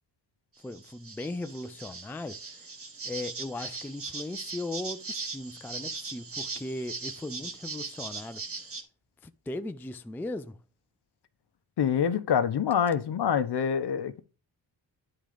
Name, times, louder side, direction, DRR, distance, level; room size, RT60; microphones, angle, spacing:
voice 1, 0.6-2.7 3.0-8.4 9.2-10.6, left 2 dB, 5° left, 0.4 m, -38 dB
sound 1, 0.6-8.8, right 4 dB, 30° right, 1.5 m, -39 dB
voice 2, 11.8-14.2, left 8 dB, 60° left, 1.0 m, -26 dB
10.5 x 3.8 x 5.0 m
wide cardioid pair, 135°, 44 cm